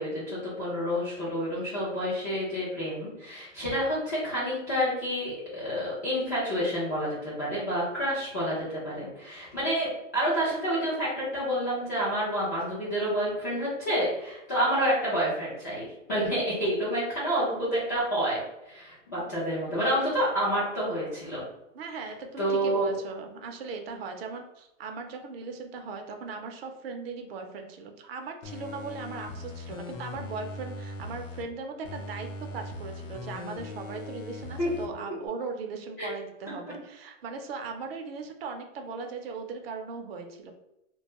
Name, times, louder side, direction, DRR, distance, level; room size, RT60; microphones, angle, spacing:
voice 1, 0.0-21.4 22.4-22.9 34.6-34.7 35.0-35.1 36.0-36.1, equal, 15° left, -9 dB, 0.3 m, -29 dB
voice 2, 21.7-40.5, right 4 dB, 50° right, 4 dB, 0.5 m, -38 dB
sound 1, 28.4-31.4 31.8-34.9 35.3-35.4, left 2 dB, 85° left, 0.7 m, -40 dB
2.3 x 2.2 x 2.9 m, 0.89 s
hypercardioid pair, 145°, 38 cm